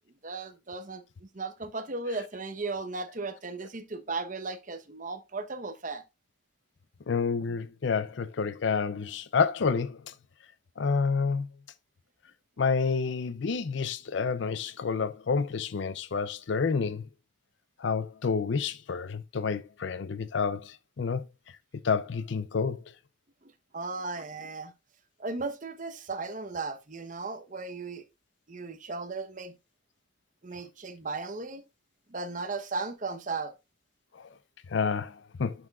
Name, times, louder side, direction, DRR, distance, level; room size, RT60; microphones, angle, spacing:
voice 1, 0.2-6.0 23.4-24.7 25.2-28.0 28.5-29.5 30.4-31.6 32.1-33.5, right 3 dB, 40° right, 0.9 m, -36 dB
voice 2, 7.1-10.1 10.8-11.5 12.6-17.0 17.8-21.2 21.8-22.8 34.1-34.3 34.7-35.5, left 5 dB, 65° left, 0.5 m, -29 dB
10.5 x 6.0 x 2.4 m
head